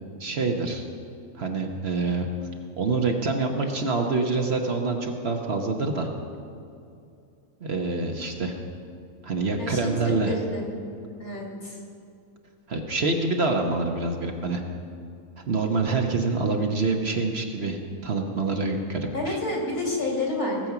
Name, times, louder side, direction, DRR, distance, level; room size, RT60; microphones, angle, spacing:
voice 1, 0.2-0.8 1.4-2.3 2.8-6.1 7.6-8.5 9.2-10.3 12.7-14.6 15.5-19.4, right 3 dB, 50° right, 3 dB, 1.1 m, -26 dB
voice 2, 9.6-10.6 11.2-11.8 19.1-20.7, left 2 dB, 75° left, -1 dB, 3.0 m, -29 dB
18.5 x 7.1 x 5.9 m, 2.5 s
omnidirectional pair, 1.6 m